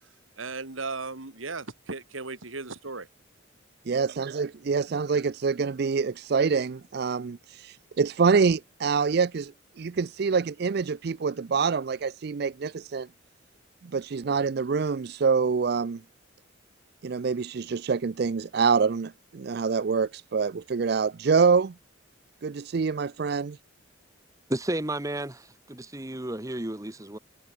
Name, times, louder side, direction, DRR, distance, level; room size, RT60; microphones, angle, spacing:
voice 1, 0.4-3.1, right 3 dB, 85° right, 2.2 m, -36 dB
voice 2, 3.9-9.5 9.8-13.1 13.9-16.0 17.0-21.7 22.4-23.6, right 5 dB, 55° right, 0.4 m, -26 dB
voice 3, 24.5-27.2, right 1 dB, 15° right, 1.1 m, -32 dB
head